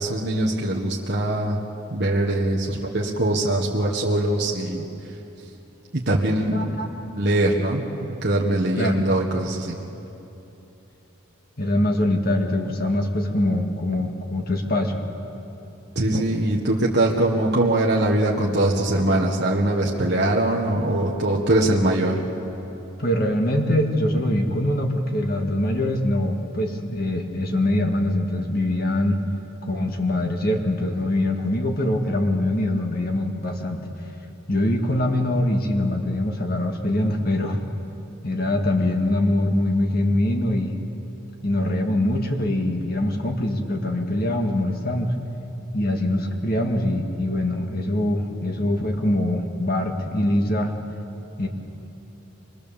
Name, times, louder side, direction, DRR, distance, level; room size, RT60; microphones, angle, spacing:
voice 1, 0.0-1.6 1.9-4.8 5.9-6.9 7.2-9.8 15.9-22.2, right 1 dB, 50° right, -3 dB, 1.5 m, -22 dB
voice 2, 6.5-6.9 8.8-9.1 11.6-15.0 23.0-29.2 29.6-33.9 34.5-37.6 38.2-40.8 41.4-45.1 45.7-50.7 51.4-51.5, left 1 dB, 45° left, 2 dB, 2.0 m, -23 dB
24.0 x 21.5 x 7.1 m, 3.0 s
head